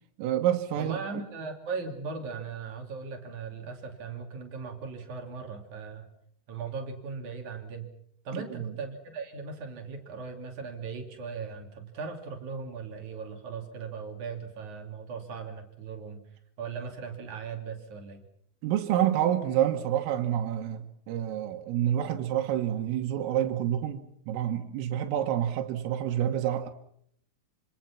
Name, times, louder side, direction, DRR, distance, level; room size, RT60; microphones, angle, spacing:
voice 1, 0.2-1.0 8.3-8.7 18.6-26.7, right 11 dB, 85° right, 4.0 m, -28 dB
voice 2, 0.8-6.1 6.5-7.9 8.2-16.2 16.6-18.2, right 5 dB, 45° right, 3.5 m, -38 dB
26.0 x 26.0 x 5.9 m
omnidirectional pair, 5.8 m